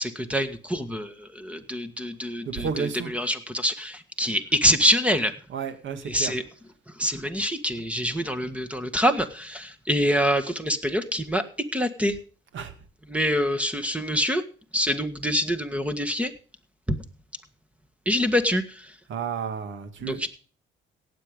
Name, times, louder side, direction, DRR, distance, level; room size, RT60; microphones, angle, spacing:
voice 1, 0.0-5.3 6.1-6.4 7.0-11.4 11.7-12.2 13.1-14.4 14.7-16.3 16.9-17.0 18.1-18.9 20.0-20.3, equal, 5° right, 10 dB, 1.7 m, -25 dB
voice 2, 2.5-3.1 5.5-6.3 12.5-12.7 19.1-20.3, right 6 dB, 70° right, 10 dB, 2.2 m, -32 dB
17.5 x 7.7 x 5.2 m, 0.40 s
cardioid pair, 90°, 20 cm